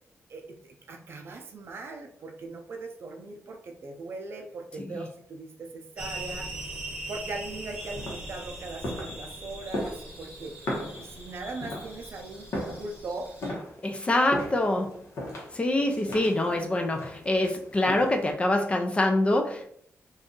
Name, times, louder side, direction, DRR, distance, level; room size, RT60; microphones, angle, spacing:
voice 1, 0.3-6.5 7.1-10.6 11.0-13.3, right 3 dB, 50° right, 3 dB, 0.5 m, -40 dB
sound 1, 6.0-13.5, right 1 dB, 15° right, 0.9 m, -41 dB
sound 2, 7.7-18.3, left 1 dB, 60° left, 0.9 m, -38 dB
voice 2, 13.8-15.0 15.5-19.7, left 1 dB, 20° left, 4 dB, 0.4 m, -25 dB
2.6 x 2.4 x 3.7 m, 0.63 s
wide cardioid pair, 175°, 5 cm